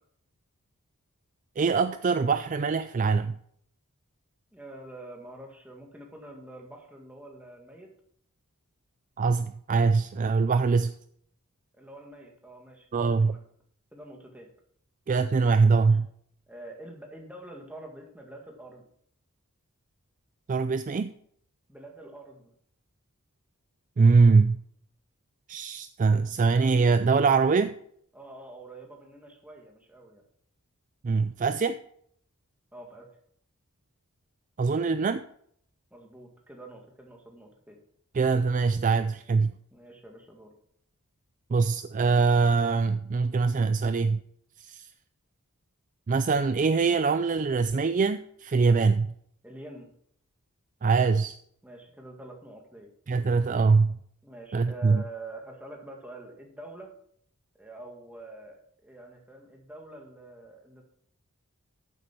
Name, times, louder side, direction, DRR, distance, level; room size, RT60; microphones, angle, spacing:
voice 1, 1.6-3.4 9.2-10.9 12.9-13.4 15.1-16.1 20.5-21.1 24.0-24.6 25.5-27.7 31.0-31.8 34.6-35.2 38.1-39.5 41.5-44.2 44.6-44.9 46.1-49.1 50.8-51.4 53.1-54.0 54.5-55.0, right 4 dB, 35° right, 11 dB, 0.3 m, -23 dB
voice 2, 4.5-7.9 11.7-13.4 13.9-14.5 15.7-15.9 16.5-18.8 21.7-22.5 28.1-30.2 32.7-33.1 35.9-37.8 39.7-40.5 49.4-49.9 51.6-52.9 54.2-56.9 57.6-60.9, right 1 dB, 5° right, 1 dB, 1.8 m, -46 dB
13.5 x 7.5 x 4.5 m, 0.66 s
head